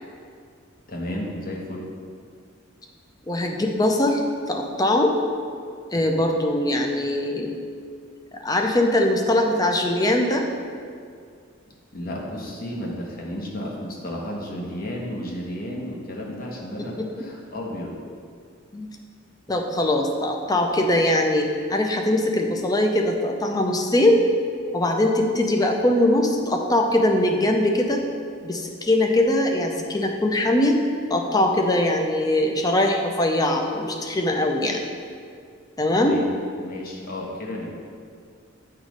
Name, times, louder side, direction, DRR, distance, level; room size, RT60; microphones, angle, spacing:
voice 1, 0.9-1.9 11.9-18.0 35.9-36.3 36.6-37.7, left 1 dB, 45° left, -2 dB, 1.0 m, -33 dB
voice 2, 3.3-4.2 4.5-5.2 5.9-7.5 8.4-10.4 16.8-17.1 18.7-18.9 19.5-24.2 24.7-28.1 28.4-30.8 31.1-34.8 35.8-36.2, left 1 dB, 20° left, 2 dB, 0.5 m, -21 dB
8.2 x 3.1 x 5.1 m, 2.2 s
head